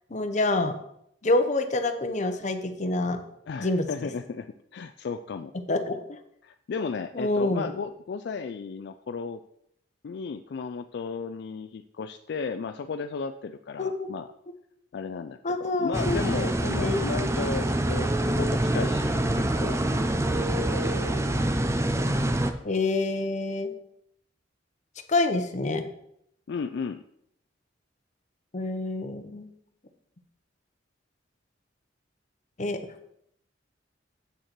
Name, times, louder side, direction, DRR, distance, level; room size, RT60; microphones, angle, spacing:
voice 1, 0.1-0.7 1.2-3.2 3.6-3.9 5.5-6.2 7.1-7.7 13.8-14.1 15.4-16.2 16.8-17.1 22.6-23.7 25.1-25.8 28.5-29.5 32.6-32.8, left 2 dB, 40° left, 8 dB, 0.8 m, -27 dB
voice 2, 3.5-5.5 6.4-9.4 10.0-14.3 14.9-18.1 18.4-19.8 20.6-21.1 26.5-27.0, left 5 dB, 60° left, 8 dB, 0.4 m, -34 dB
sound 1, 15.9-22.5, right 1 dB, 15° right, 0.5 m, -26 dB
8.1 x 6.4 x 4.5 m, 0.74 s
head